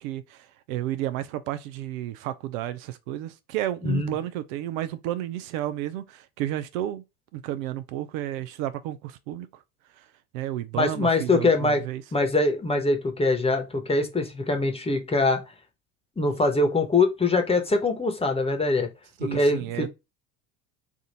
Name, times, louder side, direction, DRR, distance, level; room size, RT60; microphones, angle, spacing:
voice 1, 0.0-7.0 7.3-9.6 10.0-10.1 10.3-12.0 19.2-19.9, right 13 dB, 70° right, 0.6 m, -32 dB
voice 2, 3.8-4.1 10.7-11.8 12.1-15.4 16.2-18.9 19.2-19.9, left 3 dB, 15° left, 1.1 m, -23 dB
3.5 x 2.6 x 4.1 m
hypercardioid pair, 75°, 42 cm